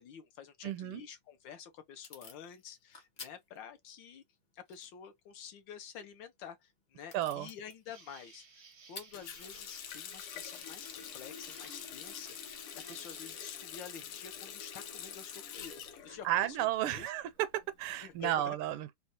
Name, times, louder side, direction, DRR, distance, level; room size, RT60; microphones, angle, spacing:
voice 1, 0.0-4.2 4.5-8.6 8.9-15.7 16.0-17.1 18.0-18.6, left 8 dB, 70° left, 1.2 m, -49 dB
voice 2, 0.6-1.0 7.1-7.5 16.2-19.0, right 13 dB, 85° right, 1.5 m, -33 dB
Packing tape duct tape / Tearing, 1.1-11.9, left 3 dB, 35° left, 0.8 m, -57 dB
Insect, 7.9-13.5, right 5 dB, 60° right, 0.6 m, -58 dB
Water tap faucet, 9.1-16.9 17.2-18.2, left 8 dB, 85° left, 1.8 m, -46 dB
4.1 x 2.3 x 2.7 m
omnidirectional pair, 2.4 m